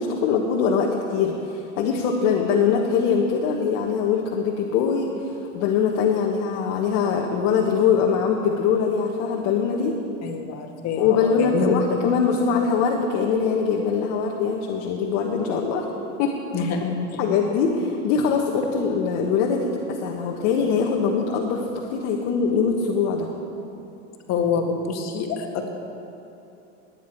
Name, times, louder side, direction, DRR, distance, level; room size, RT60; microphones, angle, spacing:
voice 1, 0.0-10.0 11.0-15.9 16.2-16.7 17.2-23.3, left 6 dB, 65° left, 0 dB, 1.4 m, -22 dB
voice 2, 10.2-11.8 16.5-17.0 24.3-25.7, left 5 dB, 45° left, 3 dB, 1.9 m, -26 dB
19.0 x 9.8 x 4.6 m, 2.8 s
supercardioid pair, 115°, 35 cm